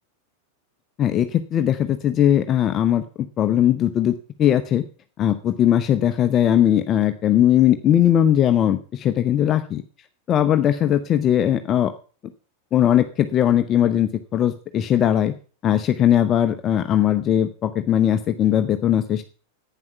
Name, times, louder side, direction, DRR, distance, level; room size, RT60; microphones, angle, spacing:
voice 1, 1.0-3.0 3.4-4.8 5.2-9.8 10.3-11.9 12.7-15.3 15.6-19.2, left 10 dB, 30° left, 9 dB, 0.7 m, -19 dB
11.0 x 9.1 x 5.8 m, 0.40 s
figure-of-eight pair, 90°, 0 cm